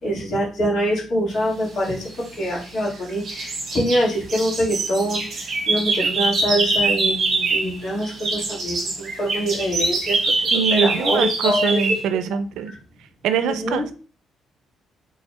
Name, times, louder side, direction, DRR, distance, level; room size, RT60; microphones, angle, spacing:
voice 1, 0.0-2.0 2.4-5.2 5.7-10.2 10.5-11.8 13.5-13.9, equal, 50° left, -3 dB, 1.8 m, -24 dB
sound 1, 2.1-2.9 3.2-12.0, right 3 dB, 45° right, 1.4 m, -24 dB
voice 2, 10.5-12.7 13.2-13.9, right 7 dB, 90° right, 11 dB, 0.5 m, -23 dB
5.5 x 3.4 x 2.2 m, 0.37 s
cardioid pair, 150°, 0 cm